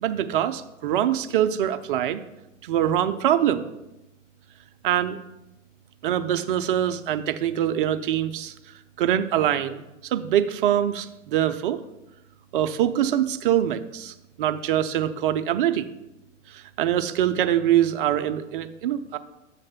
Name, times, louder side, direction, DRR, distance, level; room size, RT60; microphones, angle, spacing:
voice 1, 0.0-2.2 2.6-3.7 4.8-5.2 6.0-8.5 9.0-11.8 12.5-15.9 16.5-19.2, right 11 dB, 45° right, 9 dB, 0.5 m, -24 dB
7.5 x 3.2 x 5.7 m, 0.94 s
figure-of-eight pair, 110°, 38 cm